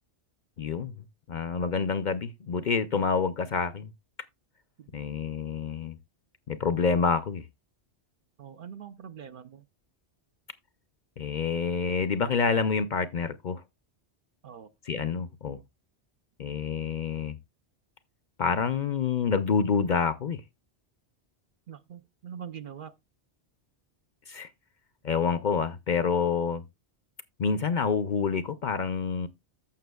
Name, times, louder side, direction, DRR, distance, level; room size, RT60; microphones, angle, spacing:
voice 1, 0.6-0.9 1.3-3.9 4.9-6.0 6.5-7.4 11.2-13.6 14.9-15.6 16.4-17.4 18.4-20.4 24.3-24.5 25.0-26.6 27.4-29.3, left 5 dB, 50° left, 0.7 m, -27 dB
voice 2, 8.4-9.6 14.4-14.7 21.7-22.9, right 8 dB, 55° right, 0.7 m, -43 dB
14.5 x 5.9 x 2.3 m
omnidirectional pair, 1.1 m